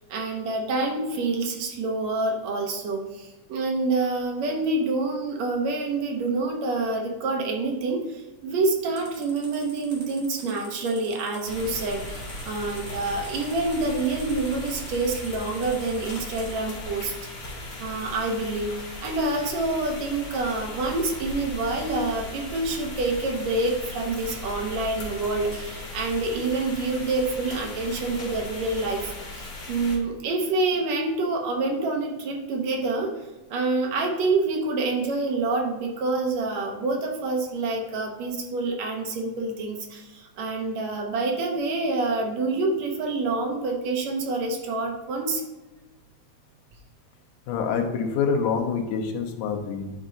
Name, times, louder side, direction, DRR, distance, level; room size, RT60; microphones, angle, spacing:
voice 1, 0.1-45.4, right 3 dB, 70° right, 2 dB, 2.0 m, -27 dB
sound 1, 9.0-16.5, right 2 dB, 45° right, 2.4 m, -46 dB
sound 2, 11.5-30.0, left 1 dB, 55° left, 3.1 m, -38 dB
voice 2, 47.5-49.9, left 6 dB, 85° left, 4 dB, 2.4 m, -26 dB
10.0 x 4.4 x 3.9 m, 1.1 s
omnidirectional pair, 3.5 m